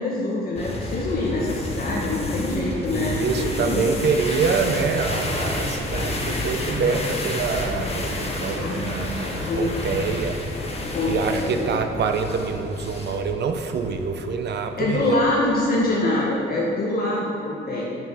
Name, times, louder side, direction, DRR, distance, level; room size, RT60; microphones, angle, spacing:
voice 1, 0.0-3.8 8.5-9.7 10.9-11.7 14.8-17.8, left 2 dB, 50° left, -5 dB, 1.5 m, -25 dB
sound 1, 0.5-15.9, left 2 dB, 30° left, 1.5 m, -30 dB
voice 2, 2.9-10.4 10.7-15.2, right 5 dB, 60° right, 6 dB, 0.8 m, -26 dB
7.9 x 7.0 x 5.6 m, 2.6 s
cardioid pair, 90°, 20 cm